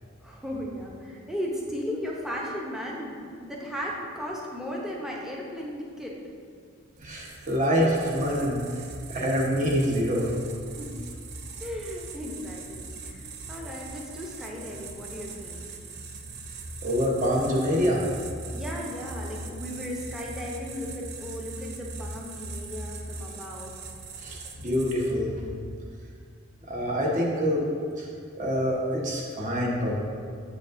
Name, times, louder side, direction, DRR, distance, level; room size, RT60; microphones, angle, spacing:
voice 1, 0.2-6.2 10.8-11.1 11.6-15.6 18.5-23.7, equal, 5° right, -3 dB, 0.7 m, -36 dB
voice 2, 7.0-8.6 9.1-10.3 16.8-18.0 24.2-25.4 26.7-27.6 28.0-28.1 28.4-30.0, equal, 40° right, -3 dB, 1.0 m, -26 dB
sound 1, 7.0-25.3, right 3 dB, 55° right, 0.5 m, -40 dB
7.6 x 5.1 x 2.6 m, 2.2 s
head